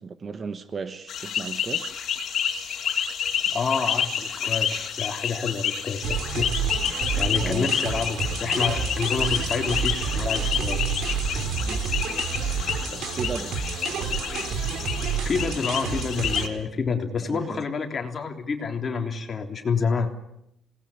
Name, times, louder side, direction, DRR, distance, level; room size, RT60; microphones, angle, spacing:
voice 1, 0.0-2.0 7.4-7.7 11.7-11.8 12.9-13.6 17.2-17.6, right 5 dB, 25° right, 1.2 m, -35 dB
sound 1, 1.1-16.5, left 8 dB, 45° left, 3.7 m, -29 dB
voice 2, 3.5-6.5 7.2-11.1 15.2-20.1, left 5 dB, 30° left, 3.4 m, -28 dB
sound 2, 6.0-16.5, right 6 dB, 65° right, 3.5 m, -29 dB
27.5 x 19.5 x 10.0 m
cardioid pair, 165°, 0 cm